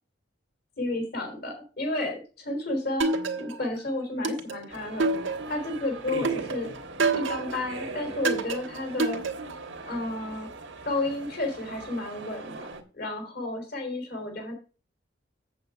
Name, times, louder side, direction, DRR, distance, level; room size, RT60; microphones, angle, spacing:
voice 1, 0.8-3.1 3.4-5.1 5.5-6.7 7.2-9.2 9.8-10.5 10.8-12.7 12.9-14.5, left 2 dB, 55° left, 4 dB, 3.5 m, -31 dB
sound 1, 3.0-3.8 4.2-5.7 6.2-7.7 8.2-9.7, right 3 dB, 90° right, 1.5 m, -28 dB
sound 2, 4.7-12.8, right 3 dB, 70° right, 1.5 m, -40 dB
7.8 x 7.8 x 4.9 m, 0.34 s
head